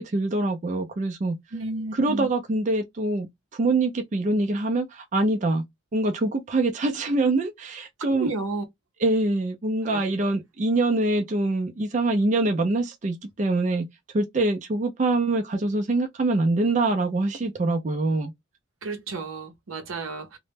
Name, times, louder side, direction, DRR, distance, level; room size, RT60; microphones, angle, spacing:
voice 1, 0.0-1.4 1.9-3.3 3.6-5.6 5.9-8.3 9.0-13.9 14.1-18.3, right 2 dB, 35° right, 0.4 m, -24 dB
voice 2, 1.5-2.3 8.1-8.6 9.9-10.0 18.8-20.4, right 3 dB, 85° right, 0.6 m, -32 dB
2.1 x 2.0 x 3.2 m
head